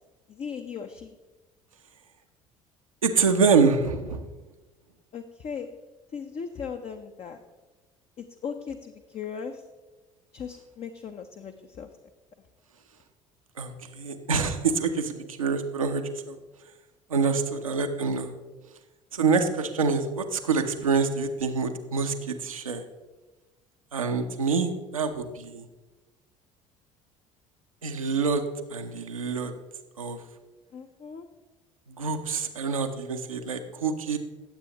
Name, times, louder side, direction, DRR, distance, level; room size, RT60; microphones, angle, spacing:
voice 1, 0.3-1.2 5.1-5.7 6.1-7.4 8.2-9.6 10.3-11.9 17.4-17.6 30.7-31.3, left 6 dB, 35° left, 6 dB, 0.7 m, -38 dB
voice 2, 3.0-4.2 13.6-16.4 17.1-18.3 19.1-22.8 23.9-25.7 27.8-28.4 28.7-29.5 30.0-30.2 31.9-34.2, right 5 dB, 85° right, 5 dB, 0.8 m, -26 dB
16.0 x 7.6 x 2.9 m, 1.2 s
figure-of-eight pair, 60°, 17 cm